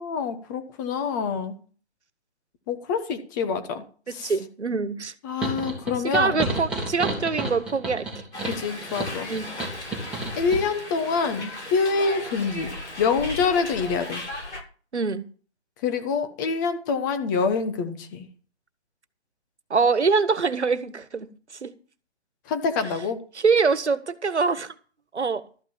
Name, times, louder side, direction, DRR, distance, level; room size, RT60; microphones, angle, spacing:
voice 1, 0.0-1.5 2.7-3.8 4.1-4.3 5.2-6.4 8.4-9.3 10.4-12.7 13.0-14.2 15.8-18.3 22.5-23.2, left 5 dB, 15° left, 8 dB, 1.1 m, -26 dB
voice 2, 4.2-5.1 6.1-8.2 9.3-9.5 14.9-15.2 19.7-21.3 21.6-21.7 23.3-24.7 25.1-25.4, right 4 dB, 85° right, 15 dB, 1.6 m, -24 dB
sound 1, 5.4-10.6, right 2 dB, 5° right, 2.5 m, -31 dB
Hiss, 8.3-14.6, left 1 dB, 85° left, 7.0 m, -36 dB
13.5 x 5.9 x 8.8 m, 0.40 s
hypercardioid pair, 155°, 33 cm